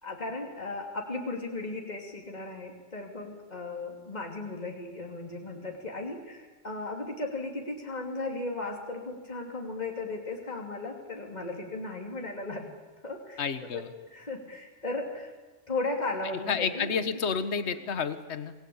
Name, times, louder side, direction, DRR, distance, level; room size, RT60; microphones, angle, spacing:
voice 1, 0.0-12.6 13.0-13.5 13.7-13.8 14.1-15.3 15.7-16.9, left 2 dB, 35° left, 1 dB, 3.1 m, -36 dB
voice 2, 13.4-13.9 16.5-18.5, left 6 dB, 60° left, 11 dB, 1.5 m, -30 dB
27.5 x 19.5 x 8.7 m, 1.3 s
omnidirectional pair, 1.3 m